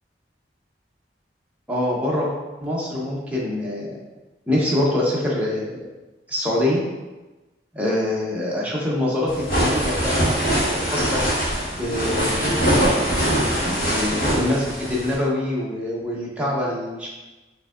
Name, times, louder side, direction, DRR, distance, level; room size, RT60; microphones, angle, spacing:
voice 1, 1.7-2.3 2.6-3.9 4.5-5.8 6.3-6.8 7.7-10.2 10.7-11.2 11.7-12.7 13.6-17.1, left 1 dB, 10° right, -5 dB, 0.7 m, -24 dB
sound 1, 9.3-15.2, equal, 55° left, 1.4 m, -22 dB
4.6 x 2.7 x 2.4 m, 1.1 s
head